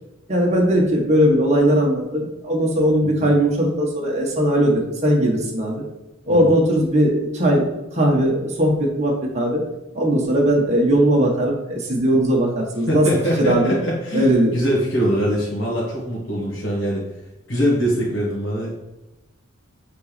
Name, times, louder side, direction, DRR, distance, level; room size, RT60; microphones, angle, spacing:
voice 1, 0.3-5.8 6.3-9.6 9.9-13.1 13.4-13.7 14.1-14.5, equal, 35° right, -2 dB, 1.5 m, -19 dB
voice 2, 3.0-3.3 6.3-6.5 12.9-17.0 17.5-18.8, equal, 80° left, -6 dB, 2.0 m, -23 dB
8.2 x 4.1 x 5.2 m, 1.0 s
head